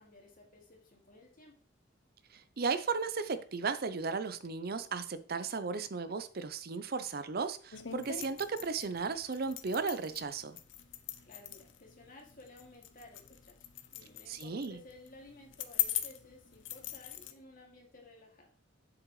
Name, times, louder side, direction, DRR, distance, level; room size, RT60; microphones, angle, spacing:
voice 1, 0.0-1.5 11.3-13.7 13.9-18.5, left 2 dB, 50° left, 2.5 m, -55 dB
voice 2, 2.3-10.6 14.3-14.8, right 4 dB, 55° right, 0.6 m, -35 dB
sound 1, 7.7-17.3, left 12 dB, 75° left, 0.8 m, -41 dB
7.7 x 7.4 x 3.2 m
head